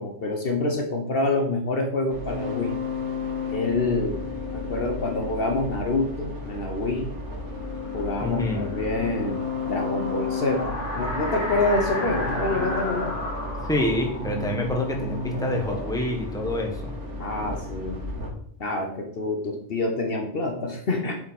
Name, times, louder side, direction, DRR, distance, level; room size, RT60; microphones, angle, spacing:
voice 1, 0.0-2.7 3.5-4.2 4.5-7.1 7.9-13.2 17.2-18.1 18.6-21.2, left 2 dB, 55° left, 3 dB, 1.1 m, -27 dB
sound 1, 2.1-18.3, left 3 dB, 75° right, 1.8 m, -33 dB
sound 2, 7.4-16.1, left 1 dB, 35° left, 1.9 m, -34 dB
voice 2, 8.2-8.7 13.7-16.7, left 1 dB, 5° left, 1 dB, 1.3 m, -27 dB
7.8 x 4.7 x 4.2 m, 0.64 s
omnidirectional pair, 1.2 m